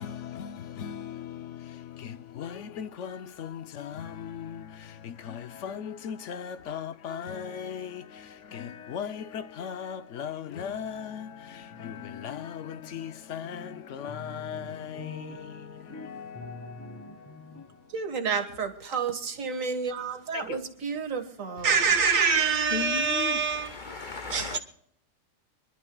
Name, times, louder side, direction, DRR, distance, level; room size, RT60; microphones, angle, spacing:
voice 1, 0.0-17.9 20.3-20.6, left 8 dB, 70° left, 1.0 m, -38 dB
sound 1, 11.7-13.1 13.4-17.9, left 2 dB, 15° left, 1.3 m, -46 dB
voice 2, 17.9-23.8 24.3-24.6, right 5 dB, 85° right, 1.9 m, -27 dB
voice 3, 22.7-24.6, left 6 dB, 55° left, 0.6 m, -35 dB
26.0 x 11.5 x 2.2 m
omnidirectional pair, 1.3 m